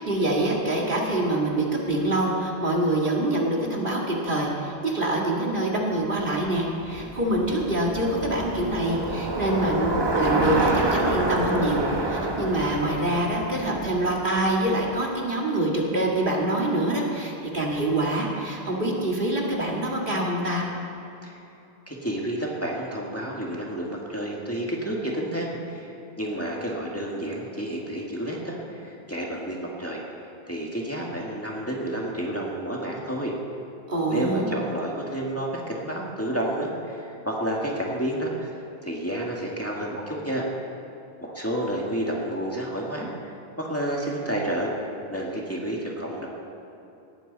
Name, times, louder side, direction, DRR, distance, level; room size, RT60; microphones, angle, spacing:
voice 1, 0.0-20.7 33.9-34.5, right 1 dB, 55° right, -2 dB, 2.3 m, -25 dB
Bicycle, 6.3-14.7, right 2 dB, 25° right, 1.1 m, -28 dB
voice 2, 21.9-30.0 30.5-33.3 34.1-38.5 38.8-40.5 41.2-46.3, right 1 dB, 15° left, -3 dB, 2.0 m, -30 dB
18.5 x 14.0 x 4.1 m, 2.9 s
omnidirectional pair, 1.0 m